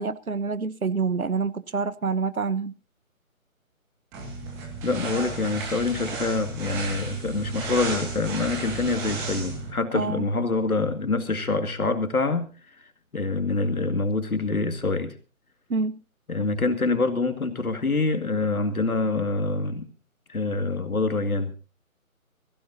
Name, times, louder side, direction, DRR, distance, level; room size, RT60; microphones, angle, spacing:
voice 1, 0.0-2.7 9.9-10.2 15.7-16.0, right 4 dB, 85° right, 1.3 m, -27 dB
sound 1, 4.1-9.7, right 3 dB, 5° right, 1.2 m, -33 dB
voice 2, 4.8-12.5 12.8-12.9 13.1-15.2 16.3-19.9 20.3-21.5, left 3 dB, 85° left, 2.2 m, -26 dB
23.0 x 15.5 x 2.7 m
figure-of-eight pair, 155°, 42 cm